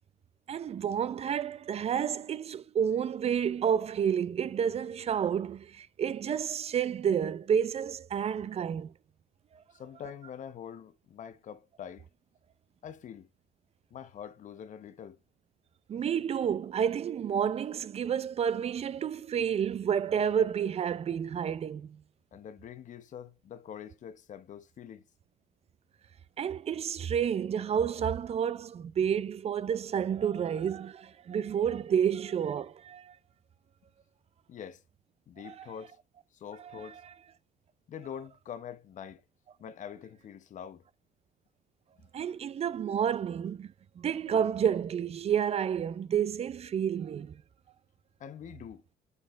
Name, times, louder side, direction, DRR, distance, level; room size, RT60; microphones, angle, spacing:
voice 1, 0.5-8.9 15.9-22.0 26.4-33.2 35.4-35.7 36.6-36.8 42.1-43.7 44.0-47.4, right 8 dB, 40° right, 0.5 m, -30 dB
voice 2, 9.7-12.1 12.8-13.3 13.9-15.2 22.3-25.0 34.5-34.8 35.3-36.0 36.3-37.0 37.9-39.2 39.6-40.8 42.0-42.1 48.2-48.8, left 8 dB, 45° left, 0.8 m, -44 dB
8.2 x 4.8 x 3.1 m
cardioid pair, 110°, 17 cm